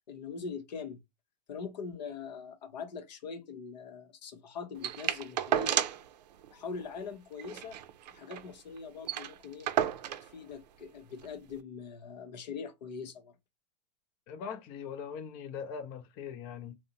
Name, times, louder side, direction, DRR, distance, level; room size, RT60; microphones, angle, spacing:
voice 1, 0.1-1.0 1.5-5.8 6.5-7.8 8.1-9.7 10.2-13.3, left 5 dB, 85° left, 0.7 m, -42 dB
sound 1, 4.8-6.1 6.4-6.5 6.8-7.0 7.4-8.5 8.8-8.9 9.0-10.3 11.2-11.3, right 11 dB, 75° right, 0.4 m, -32 dB
voice 2, 14.3-16.8, left 7 dB, 45° left, 0.5 m, -41 dB
2.5 x 2.0 x 2.7 m
hypercardioid pair, 115°, 21 cm